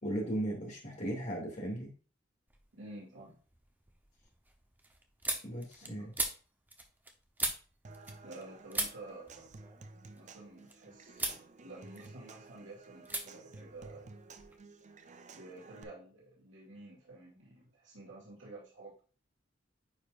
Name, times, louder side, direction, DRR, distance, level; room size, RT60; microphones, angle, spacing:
voice 1, 0.0-1.9 5.4-6.1, right 1 dB, 40° left, -2 dB, 2.4 m, -36 dB
sound 1, 2.5-3.0 3.4-8.4 8.7-10.7 11.1-11.4 11.8-12.5 13.0-13.2 13.5-14.6, right 2 dB, 10° right, 0.9 m, -40 dB
voice 2, 2.7-3.4 5.8-6.1 8.2-9.5 10.1-14.2 15.3-19.0, right 2 dB, 90° right, -5 dB, 2.3 m, -51 dB
Human voice / Acoustic guitar / Percussion, 7.8-15.8, right 3 dB, 40° right, 0.6 m, -53 dB
9.0 x 5.1 x 2.5 m, 0.37 s
head